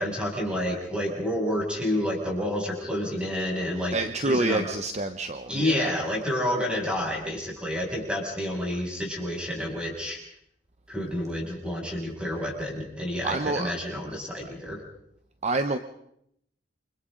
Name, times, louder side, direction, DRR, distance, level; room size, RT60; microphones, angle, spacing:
voice 1, 0.0-4.0 4.2-4.6 5.5-10.2 10.9-14.8, left 1 dB, 5° right, -2 dB, 7.1 m, -29 dB
voice 2, 3.9-6.0 13.2-13.7 15.4-15.8, right 2 dB, 40° right, 8 dB, 0.9 m, -27 dB
29.0 x 26.0 x 3.9 m, 0.73 s
head